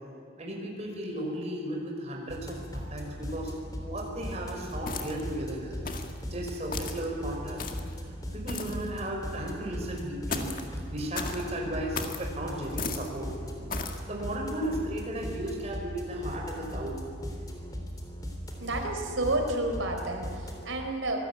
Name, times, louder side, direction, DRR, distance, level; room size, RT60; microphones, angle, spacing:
voice 1, 0.4-3.5 3.8-5.8 6.3-7.6 8.3-10.5 10.9-13.3 14.0-17.0, right 1 dB, 35° right, 0 dB, 5.6 m, -35 dB
sound 1, 2.3-20.6, equal, 20° left, 3.3 m, -39 dB
sound 2, 4.9-5.3 5.9-6.2 6.7-7.0 7.6-7.9 8.5-8.8 10.3-10.7 11.1-11.4 11.9-12.2 12.8-13.1 13.7-14.0, left 4 dB, 45° left, 1.9 m, -35 dB
voice 2, 18.6-21.3, right 2 dB, 90° right, 4 dB, 4.4 m, -30 dB
25.5 x 18.5 x 8.9 m, 2.4 s
head